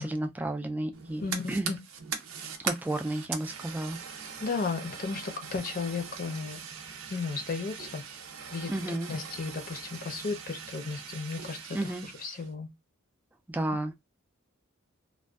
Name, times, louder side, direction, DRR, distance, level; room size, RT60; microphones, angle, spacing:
voice 1, 0.0-1.2 1.5-1.7 2.6-4.0 8.7-9.1 11.7-12.1 13.5-13.9, right 1 dB, 10° right, 0.3 m, -32 dB
Fire, 0.9-12.5, right 6 dB, 80° right, 0.5 m, -41 dB
voice 2, 1.2-1.8 4.4-6.6 7.1-8.0 8.5-8.7 9.1-11.6 11.8-12.7, left 4 dB, 45° left, 0.6 m, -34 dB
2.5 x 2.2 x 2.2 m
head